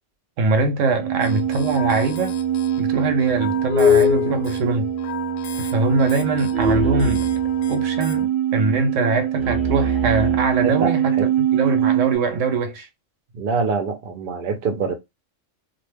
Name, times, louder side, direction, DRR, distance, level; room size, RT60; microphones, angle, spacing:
voice 1, 0.4-2.4 2.8-4.9 5.6-7.3 7.7-11.1 11.5-12.9, right 3 dB, 80° right, 1.0 m, -22 dB
sound 1, 1.0-12.2, right 5 dB, ahead, 0.6 m, -22 dB
sound 2, 1.2-8.3, left 9 dB, 75° left, 0.9 m, -36 dB
voice 2, 10.6-11.3 13.3-14.9, right 4 dB, 55° right, 0.7 m, -25 dB
2.5 x 2.1 x 3.2 m
omnidirectional pair, 1.3 m